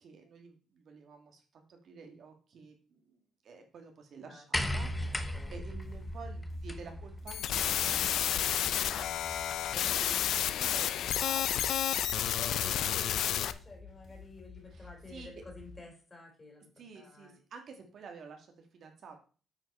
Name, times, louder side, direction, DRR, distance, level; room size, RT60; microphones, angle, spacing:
voice 1, 0.0-10.2 10.6-13.0 14.7-15.3 16.8-19.2, right 5 dB, 60° right, 4 dB, 1.7 m, -51 dB
sound 1, 4.5-10.1 11.2-11.3, left 1 dB, 10° left, 1.0 m, -38 dB
sound 2, 4.8-15.8, left 4 dB, 45° left, 4.2 m, -52 dB
voice 2, 5.0-5.5 9.7-9.9 12.4-16.7 17.0-17.4, left 2 dB, 25° left, 2 dB, 3.5 m, -51 dB
sound 3, 7.3-13.5, left 10 dB, 75° left, 0.5 m, -30 dB
8.9 x 4.7 x 4.3 m, 0.38 s
cardioid pair, 90°, 0 cm